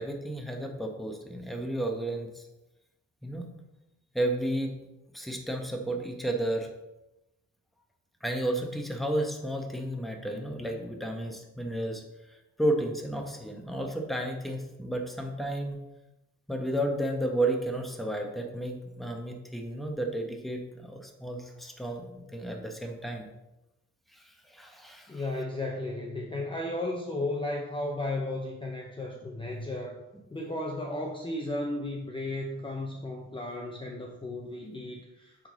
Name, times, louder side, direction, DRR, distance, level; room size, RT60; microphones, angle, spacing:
voice 1, 0.0-2.4 3.2-3.5 4.1-4.8 5.1-6.7 8.2-12.0 12.6-15.8 16.5-23.3 24.1-25.2, right 1 dB, ahead, 2 dB, 1.1 m, -32 dB
voice 2, 25.1-30.0 30.3-35.5, left 2 dB, 15° left, 0 dB, 0.8 m, -34 dB
7.8 x 3.8 x 3.9 m, 0.97 s
cardioid pair, 90°, 30 cm